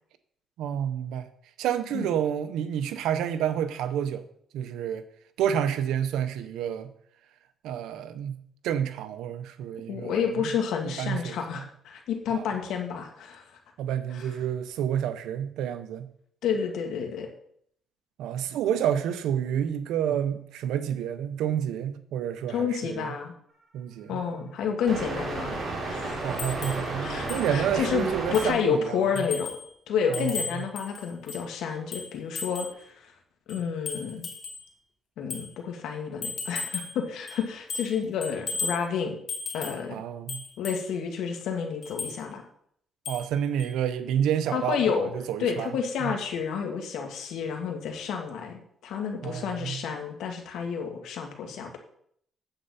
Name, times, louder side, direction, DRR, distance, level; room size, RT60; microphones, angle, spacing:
voice 1, 0.6-1.3 1.6-4.2 4.5-5.1 5.4-6.9 7.6-10.3 11.0-11.6 12.3-12.4 13.8-16.1 18.2-23.1 23.7-24.2 26.2-29.0 30.1-30.3 30.6-30.7 39.9-40.4 43.1-44.8 45.3-45.7 46.0-46.1 49.2-49.8, right 9 dB, 90° right, 0.8 m, -29 dB
voice 2, 9.9-13.4 14.1-14.4 16.4-17.3 22.5-23.3 24.1-25.6 25.9-26.2 27.0-29.5 29.9-33.1 33.5-34.3 35.2-39.2 39.5-40.0 40.6-42.4 44.5-45.1 45.4-51.8, left 6 dB, 85° left, 1.8 m, -30 dB
sound 1, 24.9-28.5, right 2 dB, 40° right, 4.3 m, -32 dB
sound 2, 26.4-26.9 27.3-27.5 27.8-27.9 28.3-28.6 29.2-29.7 30.1-31.5 31.9-32.8 33.5-34.6 35.3-35.5 36.2-37.0 37.3-38.0 38.2-38.8 39.3-39.9 40.3-40.8 41.8-42.2 43.1-43.3 43.6-43.7, left 4 dB, 55° left, 2.4 m, -35 dB
9.0 x 7.9 x 4.2 m
cardioid pair, 90°, 0 cm